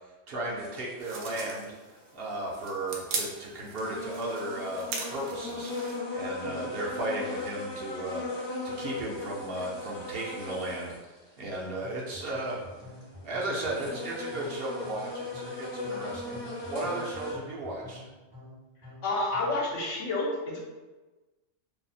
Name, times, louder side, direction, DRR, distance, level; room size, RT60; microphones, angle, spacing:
voice 1, 0.3-1.7 2.1-8.2 8.6-10.9 11.4-12.6 13.2-18.0, right 1 dB, 60° right, -3 dB, 0.8 m, -35 dB
sound 1, 0.6-1.0 2.6-2.7 3.3-3.4 3.7-11.1 11.4-11.5 12.1-13.0 13.6-17.3, left 2 dB, 45° left, 0.3 m, -38 dB
sound 2, 1.0-6.0, right 4 dB, 90° right, 1.0 m, -39 dB
sound 3, 11.8-19.7, left 1 dB, 30° right, 0.4 m, -48 dB
voice 2, 19.0-20.6, left 2 dB, 75° left, -2 dB, 1.1 m, -30 dB
2.7 x 2.0 x 4.0 m, 1.2 s
omnidirectional pair, 1.3 m